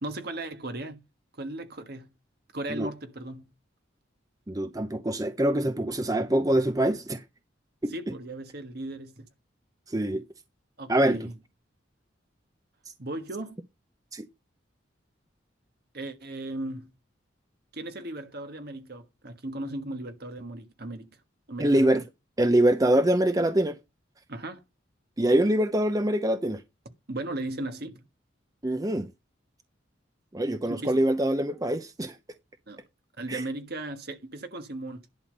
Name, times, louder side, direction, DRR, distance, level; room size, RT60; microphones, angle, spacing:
voice 1, 0.0-1.0 1.3-2.1 2.5-3.5 7.9-9.3 10.8-11.3 13.0-13.6 15.9-16.9 17.7-21.1 21.5-21.9 24.3-24.6 27.1-28.1 30.7-31.0 32.7-32.8 33.2-35.0, right 2 dB, 55° right, 1.5 m, -36 dB
voice 2, 4.5-7.2 7.8-7.9 9.9-10.2 10.9-11.2 12.9-13.0 14.1-14.2 21.6-22.0 22.4-23.8 25.2-26.6 28.6-29.1 30.3-32.2 33.3-33.4, right 1 dB, 20° right, 0.6 m, -24 dB
11.0 x 5.7 x 5.4 m
head